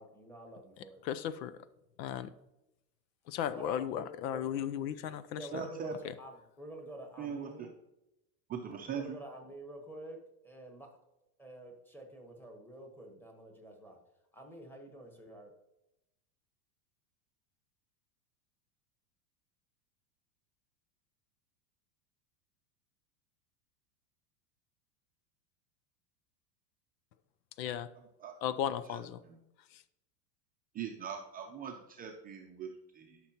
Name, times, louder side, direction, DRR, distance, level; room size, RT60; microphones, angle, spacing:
voice 1, 0.0-1.0 3.5-4.4 5.3-7.7 8.9-10.2 10.4-10.9 11.4-14.0 14.3-15.5, right 1 dB, 5° left, 1.2 m, -48 dB
voice 2, 1.0-1.5 2.0-2.3 3.3-5.4 27.6-27.9 28.4-29.2 29.7-29.8, left 10 dB, 85° left, 0.7 m, -35 dB
voice 3, 5.5-5.9 7.2-7.7 8.5-9.2 28.2-28.3 28.9-29.4 30.7-33.2, right 7 dB, 20° right, 0.5 m, -41 dB
12.5 x 5.9 x 2.9 m
supercardioid pair, 140°, 50 cm